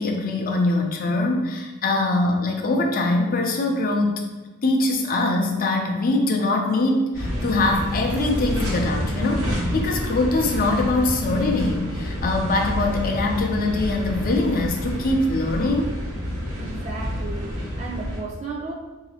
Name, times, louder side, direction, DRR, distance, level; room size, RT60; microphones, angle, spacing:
voice 1, 0.0-4.2 4.6-15.9, left 2 dB, 40° left, 3 dB, 0.5 m, -23 dB
sound 1, 7.1-18.2, equal, 75° right, 0.9 m, -28 dB
voice 2, 16.6-18.7, right 3 dB, 30° right, -3 dB, 0.7 m, -34 dB
4.0 x 2.7 x 2.8 m, 1.3 s
head